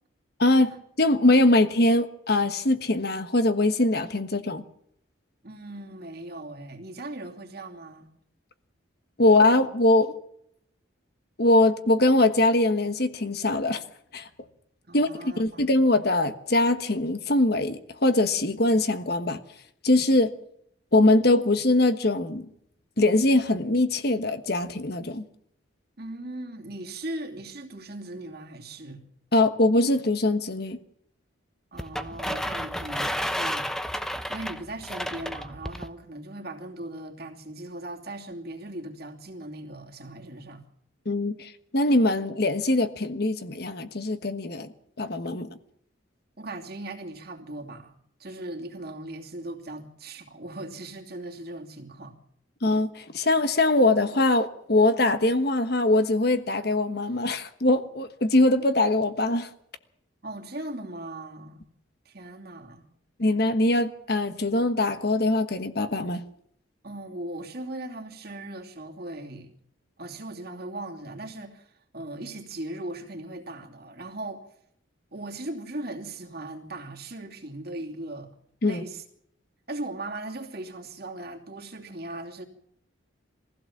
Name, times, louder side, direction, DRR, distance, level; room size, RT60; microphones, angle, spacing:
voice 1, 0.4-4.6 9.2-10.1 11.4-13.8 14.1-14.3 14.9-19.4 19.8-20.3 20.9-22.5 23.0-25.2 29.3-30.8 41.0-44.7 45.0-45.5 52.6-59.5 63.2-66.2 78.6-78.8, left 2 dB, 50° left, 1.3 m, -22 dB
voice 2, 5.4-8.1 14.9-15.7 26.0-29.0 31.7-33.7 34.3-40.6 46.4-52.1 60.2-61.6 62.0-62.9 66.8-69.5 70.0-74.4 75.1-78.3 78.6-79.0 79.7-82.4, right 1 dB, 50° right, 2.8 m, -38 dB
sound 1, 31.8-35.9, equal, ahead, 0.8 m, -31 dB
22.5 x 15.5 x 7.4 m
head